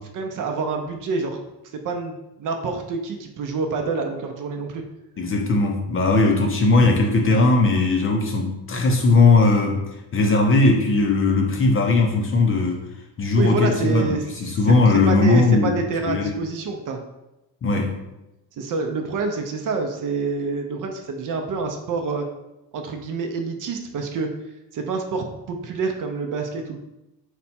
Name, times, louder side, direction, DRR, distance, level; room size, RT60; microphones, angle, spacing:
voice 1, 0.1-1.4 1.7-4.8 13.4-17.0 18.6-22.3 22.7-24.3 24.7-26.8, right 4 dB, 45° right, 4 dB, 0.6 m, -27 dB
voice 2, 5.2-9.8 10.1-12.8 13.2-15.8 16.1-16.4 17.6-18.0, left 3 dB, 30° left, 2 dB, 0.6 m, -18 dB
4.2 x 2.2 x 4.2 m, 0.94 s
cardioid pair, 115°, 43 cm